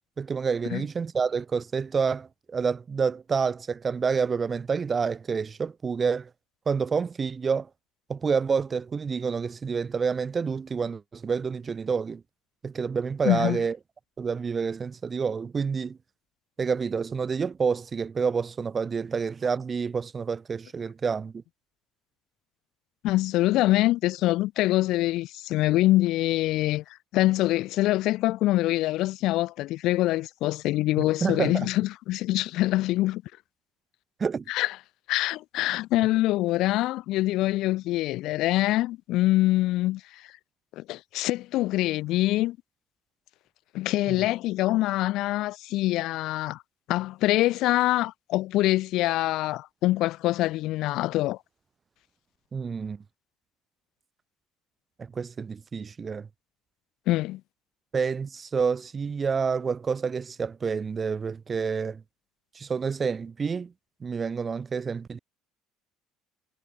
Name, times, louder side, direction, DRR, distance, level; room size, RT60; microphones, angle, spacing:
voice 1, 0.2-6.3 6.7-7.7 8.1-12.2 12.6-13.8 14.2-16.0 16.6-21.4 31.2-31.7 34.2-34.4 44.1-44.2 52.5-53.0 55.0-56.3 57.9-62.0 62.5-63.7 64.0-65.2, right 5 dB, 20° right, 2.8 m, -28 dB
voice 2, 13.2-13.6 23.0-26.8 27.1-33.2 34.5-34.7 35.1-40.3 40.8-42.6 43.7-46.6 46.9-51.4 57.1-57.4, left 17 dB, 60° left, 5.8 m, -24 dB
cardioid pair, 175°, 0 cm